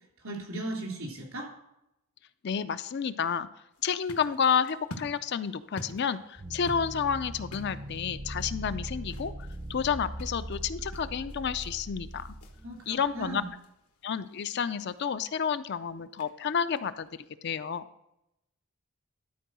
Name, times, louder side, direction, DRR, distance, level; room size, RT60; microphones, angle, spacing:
voice 1, 0.2-1.5 12.6-13.5, right 1 dB, 75° right, -1 dB, 3.2 m, -37 dB
voice 2, 2.4-3.5 3.8-9.3 9.7-12.3 12.9-13.4 14.0-17.1 17.4-17.8, left 7 dB, 50° left, 13 dB, 0.4 m, -30 dB
sound 1, 3.7-17.3, left 1 dB, 90° left, 1.3 m, -51 dB
sound 2, 6.4-13.5, right 1 dB, 25° right, 0.6 m, -40 dB
12.0 x 4.6 x 6.1 m, 0.85 s
head